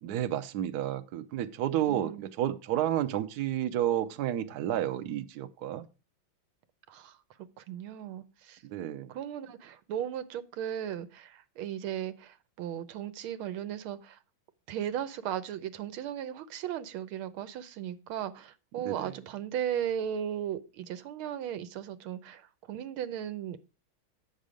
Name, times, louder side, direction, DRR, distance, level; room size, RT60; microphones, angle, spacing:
voice 1, 0.0-5.9 8.6-9.1 18.8-19.1, right 11 dB, 65° right, 1.0 m, -31 dB
voice 2, 1.9-2.3 6.9-7.2 7.6-8.6 9.1-14.2 14.7-23.6, right 10 dB, 85° right, 1.6 m, -36 dB
8.4 x 6.4 x 4.9 m
omnidirectional pair, 2.3 m